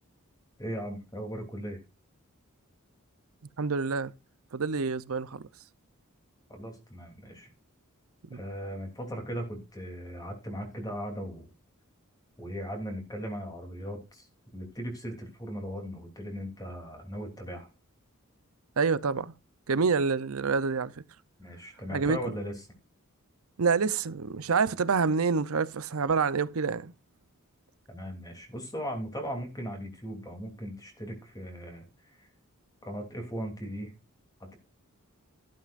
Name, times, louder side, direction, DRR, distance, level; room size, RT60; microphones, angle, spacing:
voice 1, 0.6-1.8 6.5-7.5 8.3-11.5 12.4-14.3 14.5-17.7 21.4-22.6 27.9-32.3 32.8-33.9 34.4-34.6, equal, 15° left, 3.0 m, -38 dB
voice 2, 3.6-4.1 4.5-5.4 8.3-8.4 18.8-19.3 19.7-20.9 21.9-22.2 23.6-26.9, right 5 dB, 80° right, 0.7 m, -27 dB
13.0 x 11.5 x 2.5 m
head